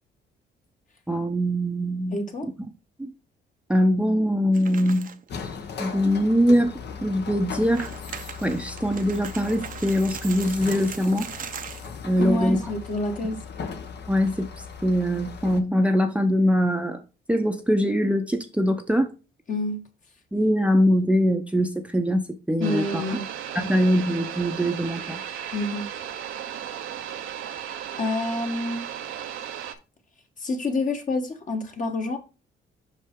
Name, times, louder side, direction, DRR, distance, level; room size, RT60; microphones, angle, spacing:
voice 1, 1.1-2.5 3.0-3.1 3.7-5.2 5.8-6.7 7.0-7.9 8.4-11.3 12.0-12.6 14.1-14.5 14.8-17.0 17.3-19.1 20.3-23.2 23.5-25.2, equal, 5° right, 0.7 m, -22 dB
voice 2, 2.1-2.5 12.2-13.4 19.5-19.8 22.6-23.3 25.5-25.9 28.0-28.8 30.4-32.2, left 2 dB, 40° left, 1.5 m, -27 dB
sound 1, 4.5-5.3 5.7-5.8 6.4-6.5 7.5-11.9, right 7 dB, 45° right, 0.7 m, -39 dB
sound 2, 5.3-15.6, left 6 dB, 60° left, 1.1 m, -38 dB
sound 3, 22.6-29.8, right 9 dB, 80° right, 0.8 m, -35 dB
5.6 x 5.4 x 3.7 m
cardioid pair, 90°, 20 cm